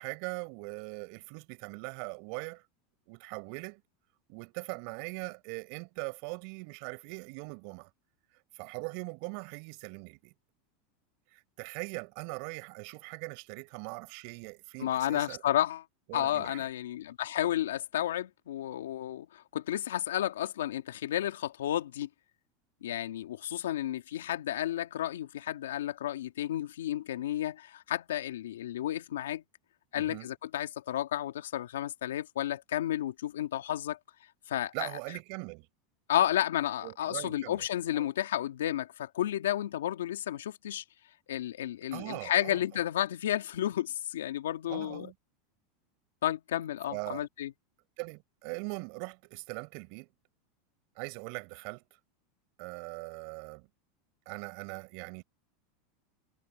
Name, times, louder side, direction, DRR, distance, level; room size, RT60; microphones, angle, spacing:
voice 1, 0.0-2.6 3.1-3.8 4.3-7.9 8.5-10.3 11.3-15.4 16.1-16.7 29.9-30.3 34.7-35.7 36.8-37.7 37.9-38.1 41.9-42.6 44.7-45.1 46.9-47.3 48.0-50.1 51.0-51.8 52.6-53.7 54.3-55.2, right 34 dB, 60° right, 6.2 m, -41 dB
voice 2, 14.8-15.8 16.1-22.1 22.8-29.4 29.9-34.0 34.5-34.9 36.1-40.8 41.3-45.1 46.2-47.5, left 12 dB, 85° left, 2.3 m, -32 dB
hypercardioid pair, 110°, 0 cm